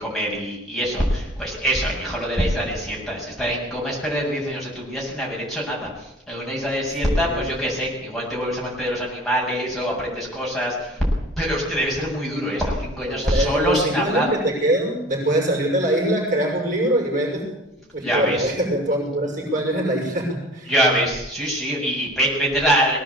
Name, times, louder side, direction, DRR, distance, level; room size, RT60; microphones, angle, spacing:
voice 1, 0.0-5.9 6.3-11.0 11.4-14.3 18.0-18.5 20.7-23.0, equal, ahead, -4 dB, 7.6 m, -24 dB
voice 2, 13.1-17.5 17.9-20.7, right 1 dB, 40° right, -1 dB, 6.4 m, -23 dB
21.0 x 18.0 x 8.7 m, 0.86 s
head